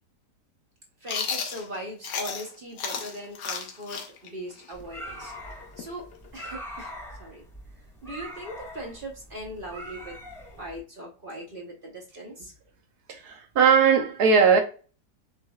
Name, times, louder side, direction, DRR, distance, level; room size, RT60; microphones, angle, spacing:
voice 1, 1.0-5.3 5.8-6.1 6.3-6.9 7.2-7.4 8.0-10.2 10.6-12.5, right 1 dB, 40° right, 0.9 m, -39 dB
Chewing mastication, 1.1-2.5 2.8-6.4, left 6 dB, 75° left, 1.4 m, -33 dB
sound 1, 4.7-10.8, equal, ahead, 1.1 m, -42 dB
voice 2, 13.1-14.6, right 6 dB, 70° right, 1.4 m, -19 dB
7.0 x 3.2 x 2.3 m
omnidirectional pair, 1.8 m